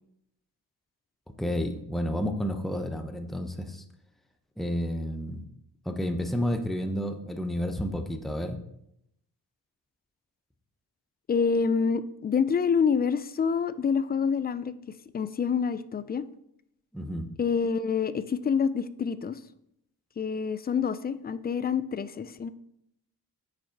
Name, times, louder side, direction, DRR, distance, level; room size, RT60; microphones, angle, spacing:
voice 1, 1.4-3.8 4.6-5.4 5.8-8.6 16.9-17.3, equal, ahead, 5 dB, 0.7 m, -30 dB
voice 2, 11.3-14.7 15.1-16.2 17.4-19.4 20.2-22.5, left 6 dB, 25° left, 14 dB, 0.3 m, -27 dB
5.0 x 4.7 x 4.5 m, 0.78 s
cardioid pair, 50°, 40 cm